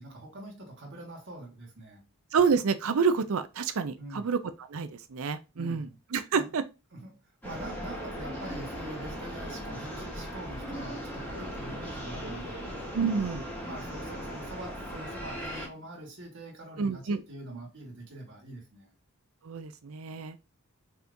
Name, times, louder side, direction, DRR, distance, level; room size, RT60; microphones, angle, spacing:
voice 1, 0.0-2.1 4.0-4.3 5.5-6.0 6.3-6.5 6.9-7.2 7.4-12.7 13.6-18.9, right 1 dB, 55° right, 1.4 m, -44 dB
voice 2, 2.3-4.4 4.7-6.6 12.9-13.4 16.8-17.2 19.4-20.4, right 5 dB, 75° right, 0.5 m, -28 dB
sound 1, 7.4-15.7, equal, 5° left, 1.7 m, -38 dB
4.2 x 3.5 x 2.6 m
head